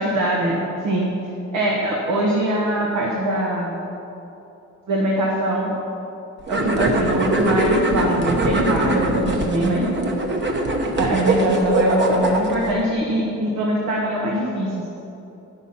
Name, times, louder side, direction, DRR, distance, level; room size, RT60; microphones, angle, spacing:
voice 1, 0.0-1.1 1.5-3.7 4.9-5.7 6.5-9.9 11.0-15.0, right 1 dB, 80° right, -2 dB, 1.3 m, -22 dB
sound 1, 6.5-12.7, right 1 dB, 40° right, 1.1 m, -22 dB
9.8 x 6.0 x 5.6 m, 2.9 s
cardioid pair, 90°, 30 cm